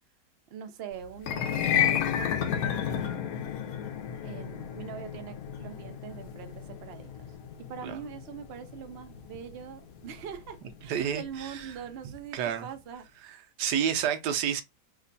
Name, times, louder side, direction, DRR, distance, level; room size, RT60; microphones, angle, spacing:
voice 1, 0.5-3.3 4.2-13.1, right 8 dB, 70° right, 0.6 m, -43 dB
sound 1, 1.2-11.5, left 9 dB, 70° left, 0.9 m, -32 dB
voice 2, 10.9-11.7 12.3-12.7 13.6-14.6, right 8 dB, 90° right, 1.2 m, -29 dB
3.2 x 2.2 x 3.8 m
omnidirectional pair, 1.8 m